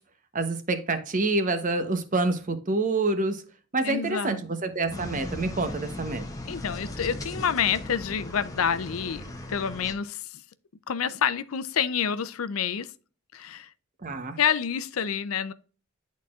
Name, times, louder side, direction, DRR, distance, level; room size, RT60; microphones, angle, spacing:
voice 1, 0.3-3.4 3.7-6.2 14.0-14.4, right 3 dB, 40° right, 0.9 m, -27 dB
voice 2, 3.8-4.4 6.5-10.2 10.9-12.9 13.3-13.7 14.4-15.5, left 7 dB, 85° left, 0.5 m, -28 dB
sound 1, 4.9-9.9, left 1 dB, 15° left, 1.1 m, -38 dB
10.5 x 4.1 x 2.4 m
head